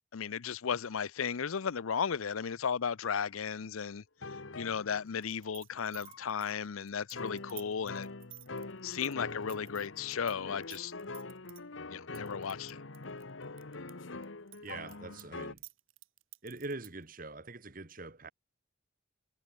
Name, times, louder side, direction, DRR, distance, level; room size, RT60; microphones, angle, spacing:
voice 1, 0.1-4.0 4.6-8.1 8.8-10.9 11.9-12.8, left 6 dB, 85° left, 0.6 m, -35 dB
sound 1, 4.2-5.2 5.9-6.6 7.1-15.5, left 3 dB, 70° left, 1.3 m, -44 dB
sound 2, 5.2-10.3 10.6-11.6 12.1-13.9 14.2-17.0, right 19 dB, 80° right, 3.4 m, -52 dB
voice 2, 14.6-15.6 16.4-18.3, right 3 dB, 40° right, 1.5 m, -43 dB
head